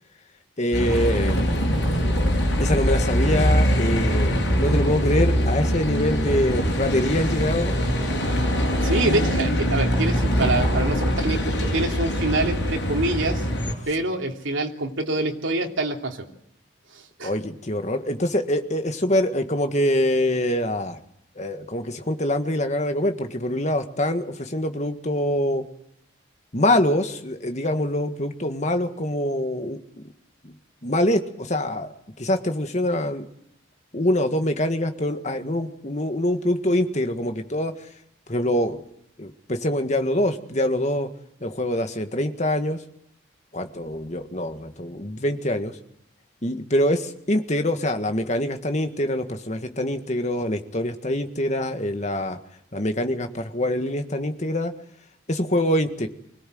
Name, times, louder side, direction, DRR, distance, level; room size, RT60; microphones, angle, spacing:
voice 1, 0.6-1.8 2.6-7.8 17.2-21.0 21.3-25.7 26.5-30.0 30.4-30.5 30.8-31.9 32.2-33.3 33.9-37.7 38.3-38.8 39.2-41.1 41.4-42.8 43.5-45.8 46.4-52.4 52.7-54.7 55.3-56.1, left 1 dB, 35° left, 7 dB, 1.7 m, -24 dB
Bus, 0.7-13.7, equal, 60° left, 6.6 m, -22 dB
voice 2, 8.8-13.4 13.9-16.3 17.2-17.3, right 2 dB, 75° right, 2 dB, 3.0 m, -26 dB
25.0 x 17.5 x 7.8 m, 0.73 s
head